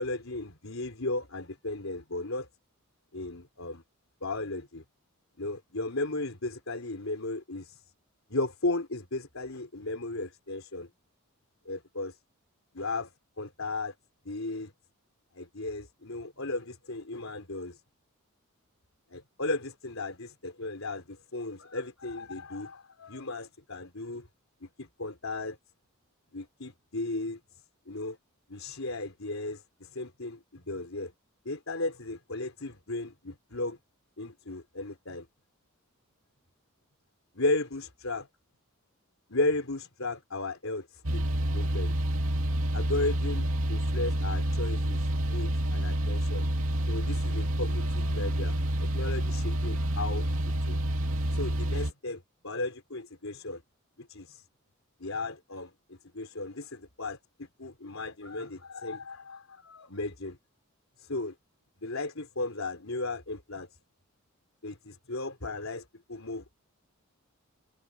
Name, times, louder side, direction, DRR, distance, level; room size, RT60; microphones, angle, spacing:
voice 1, 0.0-2.5 3.1-3.8 4.2-4.8 5.4-7.8 8.3-10.9 11.7-12.2 12.7-13.1 13.4-13.9 14.2-14.7 15.3-17.8 19.1-24.3 24.6-25.6 26.3-27.4 27.9-28.2 28.5-31.1 31.4-33.8 34.2-35.3 37.3-38.3 39.3-41.2 41.5-41.9 42.7-46.5 46.9-48.6 48.9-50.8 51.3-53.6 54.0-54.4 55.0-60.4 61.0-61.3 61.8-63.7 64.6-66.5, left 2 dB, 70° left, 4.3 m, -35 dB
sound 1, 41.0-51.9, right 1 dB, 70° right, 2.8 m, -28 dB
head